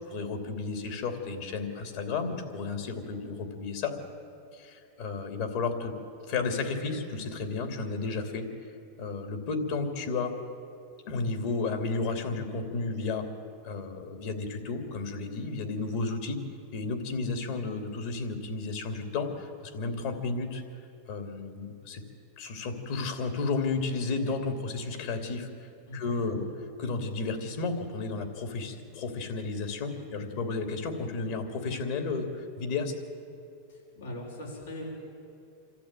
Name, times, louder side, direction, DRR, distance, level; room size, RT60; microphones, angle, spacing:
voice 1, 0.1-3.9 4.5-6.0 6.3-8.5 9.0-10.3 11.1-13.3 13.6-16.4 16.7-20.6 21.1-22.0 22.4-25.5 25.9-26.5 26.8-32.9, left 4 dB, 65° left, 5 dB, 2.9 m, -32 dB
voice 2, 25.9-26.5 33.7-34.8, left 1 dB, 90° left, -2 dB, 6.1 m, -41 dB
26.0 x 13.5 x 9.1 m, 2.6 s
hypercardioid pair, 115°, 0 cm